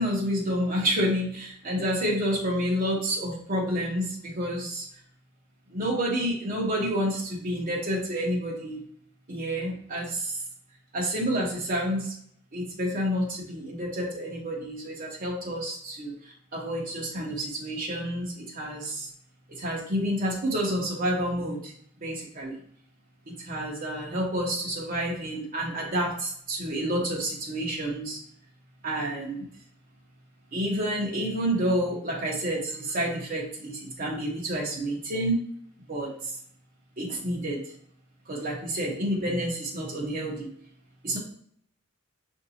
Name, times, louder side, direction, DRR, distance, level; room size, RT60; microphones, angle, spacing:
voice 1, 0.0-4.9 5.7-8.8 9.3-10.4 10.9-12.1 12.5-19.1 19.5-21.7 22.0-22.6 23.3-28.2 28.8-29.5 30.5-35.4 35.9-36.3 37.0-37.6 38.3-40.5 41.0-41.2, equal, 45° right, -2 dB, 1.0 m, -29 dB
6.6 x 2.7 x 2.8 m, 0.64 s
head